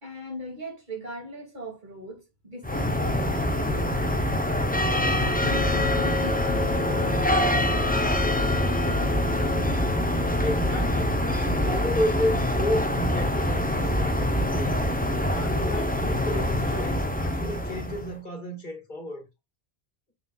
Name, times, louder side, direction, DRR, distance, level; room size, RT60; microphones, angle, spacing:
voice 1, 0.0-4.4 4.8-9.1, right 1 dB, 50° right, 3.0 m, -41 dB
sound 1, 2.6-18.1, left 1 dB, 10° left, 0.9 m, -25 dB
voice 2, 10.4-14.7 15.2-19.2, left 1 dB, 50° left, 2.2 m, -32 dB
6.9 x 5.9 x 2.5 m
omnidirectional pair, 1.0 m